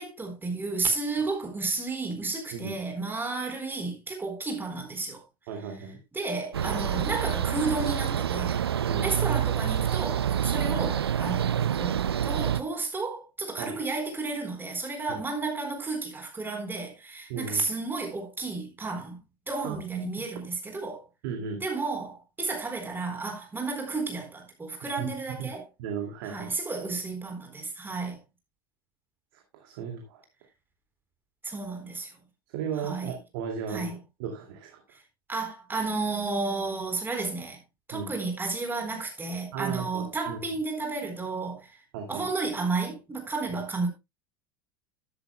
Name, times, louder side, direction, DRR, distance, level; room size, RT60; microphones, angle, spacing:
voice 1, 0.0-5.2 6.1-8.6 9.0-21.0 21.6-25.6 26.2-28.2 31.4-32.1 32.8-33.1 33.7-33.9 34.9-35.0 35.3-37.6 37.9-41.7 42.1-43.9, right 3 dB, 15° right, 4.0 m, -32 dB
voice 2, 5.5-6.0 8.9-9.1 13.6-13.8 17.3-17.6 19.6-20.1 21.2-21.6 25.0-25.1 25.4-25.5 25.8-26.5 29.3-30.2 32.5-34.8 37.9-38.1 39.5-40.4 41.9-42.3, right 6 dB, 65° right, 2.3 m, -35 dB
sound 1, 6.5-12.6, right 9 dB, 85° right, 0.5 m, -27 dB
13.0 x 10.5 x 2.2 m
hypercardioid pair, 80°, 13 cm